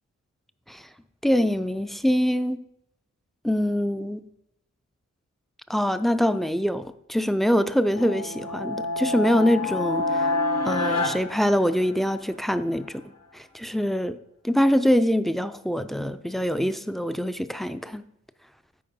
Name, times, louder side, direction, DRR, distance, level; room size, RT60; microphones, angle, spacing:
voice 1, 1.2-2.6 3.4-4.3 5.7-10.3 10.6-13.0 13.3-14.2 14.4-18.0, equal, ahead, 12 dB, 0.4 m, -24 dB
sound 1, 7.9-12.3, left 2 dB, 60° left, 1.3 m, -28 dB
8.6 x 5.1 x 5.3 m, 0.81 s
wide cardioid pair, 105°, 29 cm